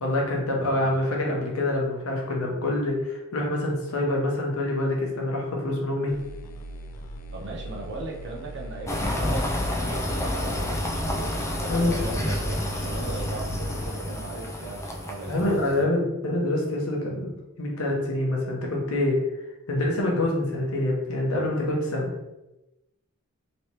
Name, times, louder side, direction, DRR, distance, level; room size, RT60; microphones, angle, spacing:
voice 1, 0.0-6.1 11.7-11.9 15.3-17.3 17.6-19.2 19.7-22.1, left 1 dB, 70° left, -1 dB, 0.9 m, -26 dB
voice 2, 0.5-0.9 7.3-15.9, right 2 dB, 50° right, -1 dB, 0.7 m, -38 dB
sound 1, 6.1-13.9, right 1 dB, 85° left, 0.4 m, -40 dB
sound 2, 8.9-15.8, left 1 dB, 15° left, 0.4 m, -29 dB
3.2 x 3.0 x 2.9 m, 0.96 s
head